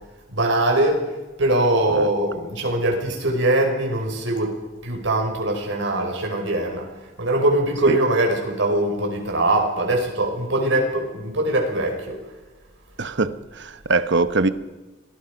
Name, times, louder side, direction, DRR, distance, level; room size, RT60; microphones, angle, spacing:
voice 1, 0.3-1.1 1.4-4.6 4.8-6.9 7.2-12.2, right 1 dB, 80° right, 5.8 m, -22 dB
voice 2, 13.0-14.5, right 3 dB, 65° right, 1.1 m, -22 dB
26.0 x 19.0 x 5.3 m
head